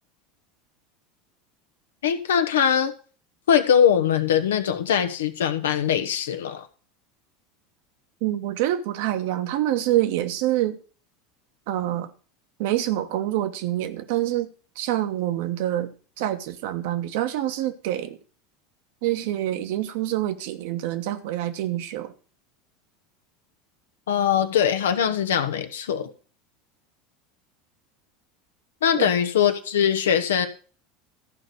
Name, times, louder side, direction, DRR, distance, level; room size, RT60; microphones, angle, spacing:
voice 1, 2.0-2.9 3.5-6.7 24.1-26.1 28.8-30.5, left 8 dB, 70° left, 1.1 m, -21 dB
voice 2, 8.2-10.8 11.7-12.1 12.6-14.5 14.8-18.2 19.0-22.1 28.9-29.1, right 13 dB, 60° right, 1.2 m, -26 dB
14.0 x 5.3 x 6.2 m
figure-of-eight pair, 75°, 0 cm